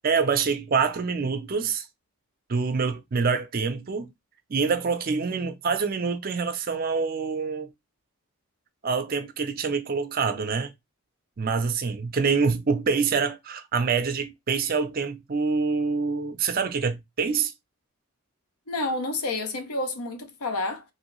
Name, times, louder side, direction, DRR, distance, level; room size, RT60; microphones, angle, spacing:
voice 1, 0.0-1.9 2.5-4.1 4.5-7.7 8.8-10.7 11.4-17.5, right 5 dB, 40° right, 0.4 m, -26 dB
voice 2, 18.7-20.8, left 2 dB, 80° left, 0.7 m, -29 dB
3.0 x 2.7 x 3.0 m
head